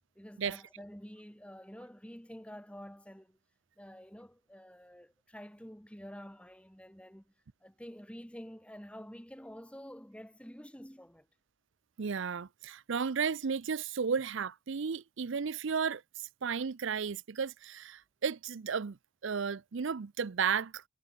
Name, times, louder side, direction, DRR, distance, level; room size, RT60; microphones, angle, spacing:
voice 1, 0.2-3.4 3.8-7.3 7.6-11.3, equal, 5° left, 2.3 m, -49 dB
voice 2, 12.0-19.0 19.2-20.8, right 6 dB, 60° right, 0.5 m, -34 dB
head